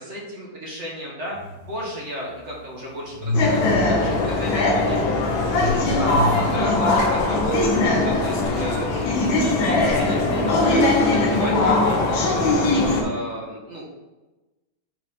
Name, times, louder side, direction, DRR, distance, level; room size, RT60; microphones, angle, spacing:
voice 1, 0.0-1.4 1.7-5.0 5.2-12.7 13.0-13.8, equal, 40° right, -4 dB, 1.6 m, -34 dB
sound 1, 1.3-1.7 2.0-6.7, left 2 dB, 65° right, 2.3 m, -29 dB
sound 2, 3.3-13.0, left 2 dB, 75° left, 1.8 m, -20 dB
7.7 x 4.1 x 4.2 m, 1.1 s
omnidirectional pair, 2.2 m